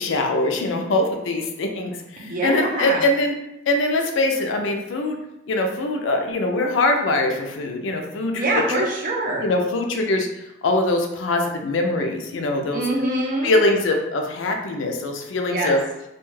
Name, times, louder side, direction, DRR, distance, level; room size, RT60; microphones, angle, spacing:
voice 1, 0.0-3.3 3.7-5.2 5.5-8.8 9.4-12.8 13.4-15.8, left 2 dB, 80° left, 3 dB, 0.4 m, -23 dB
voice 2, 2.2-3.0 8.3-9.4 12.7-13.5 15.4-15.7, right 2 dB, 45° right, -2 dB, 0.5 m, -24 dB
2.4 x 2.3 x 3.1 m, 0.90 s
head